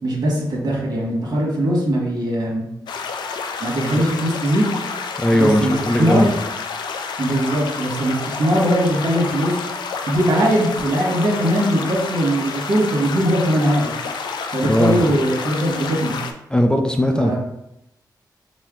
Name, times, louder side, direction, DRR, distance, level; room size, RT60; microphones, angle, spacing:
voice 1, 0.0-2.7 3.6-4.7 5.3-6.3 7.2-9.6 10.0-13.9 14.5-16.2 17.1-17.4, equal, 65° right, -3 dB, 1.4 m, -20 dB
sound 1, 2.9-16.3, left 5 dB, 85° left, 0.4 m, -29 dB
voice 2, 5.2-6.3 14.6-15.0 16.5-17.4, equal, 10° left, 4 dB, 0.4 m, -18 dB
4.3 x 2.2 x 3.7 m, 0.83 s
cardioid pair, 60°, 7 cm